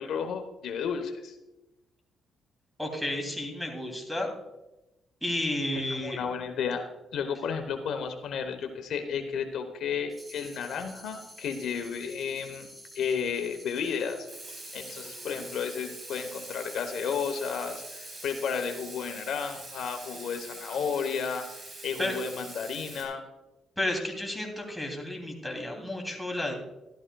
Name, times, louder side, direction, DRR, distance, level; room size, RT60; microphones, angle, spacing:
voice 1, 0.0-1.4 5.9-12.7 12.9-14.3 14.7-23.2, left 6 dB, 75° left, 6 dB, 1.0 m, -33 dB
voice 2, 2.8-4.3 5.2-6.2 22.0-22.2 23.8-26.5, left 1 dB, ahead, 0 dB, 2.9 m, -32 dB
sound 1, 10.1-19.3, equal, 15° right, 2.3 m, -50 dB
Water tap faucet / Sink (filling or washing), 14.3-23.0, right 2 dB, 40° right, 3.9 m, -44 dB
13.0 x 12.5 x 2.3 m, 0.96 s
cardioid pair, 90°, 0 cm